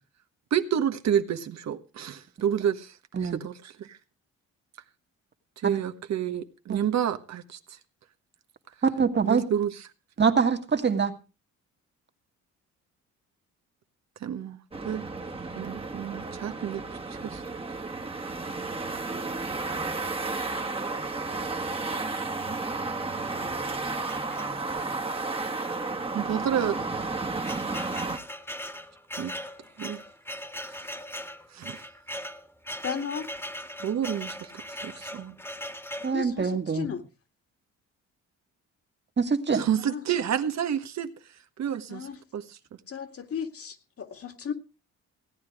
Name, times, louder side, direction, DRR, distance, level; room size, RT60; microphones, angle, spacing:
voice 1, 0.5-2.9 3.2-4.0 5.6-7.6 9.2-9.8 14.2-14.6 14.8-15.0 15.5-16.8 17.2-17.4 26.1-26.8 29.2-29.3 29.8-30.0 31.5-31.8 33.8-34.5 34.8-35.3 39.5-41.1 41.6-42.1 42.3-42.4, right 9 dB, 60° right, 8 dB, 1.4 m, -29 dB
voice 2, 8.8-9.4 10.2-11.1 36.0-36.9 39.2-39.6, right 5 dB, 35° right, 6 dB, 2.0 m, -24 dB
sound 1, 14.7-28.2, right 3 dB, 20° right, 1.6 m, -32 dB
sound 2, 24.1-24.9 25.6-25.8 26.1-26.2 26.9-36.2, equal, 10° left, 1.7 m, -39 dB
voice 3, 32.8-33.3 36.1-37.1 39.7-40.1 41.9-42.2 42.9-44.5, left 7 dB, 50° left, 8 dB, 2.2 m, -35 dB
16.5 x 9.8 x 4.9 m, 0.32 s
cardioid pair, 90°, 30 cm